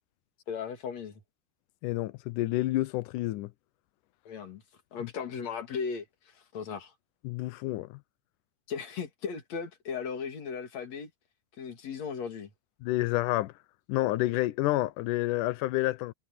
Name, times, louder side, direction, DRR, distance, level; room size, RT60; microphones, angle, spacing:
voice 1, 0.5-1.2 4.2-4.6 4.9-6.9 8.7-11.1 11.6-12.5, left 6 dB, 45° left, 3.3 m, -37 dB
voice 2, 1.8-3.5 7.2-7.9 12.8-13.5 13.9-16.1, left 17 dB, 85° left, 1.8 m, -29 dB
omnidirectional pair, 4.5 m